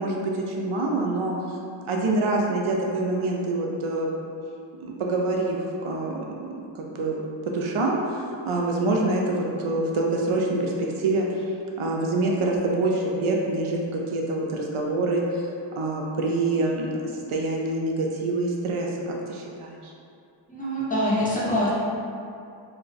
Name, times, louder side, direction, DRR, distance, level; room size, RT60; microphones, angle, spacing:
voice 1, 0.0-1.6 1.9-4.1 4.8-6.3 6.8-7.2 7.5-11.3 11.8-15.5 15.8-19.9, right 2 dB, 85° right, -1 dB, 0.5 m, -26 dB
voice 2, 20.5-21.7, equal, 15° left, -10 dB, 1.0 m, -24 dB
2.6 x 2.1 x 4.0 m, 2.5 s
wide cardioid pair, 55°, 49 cm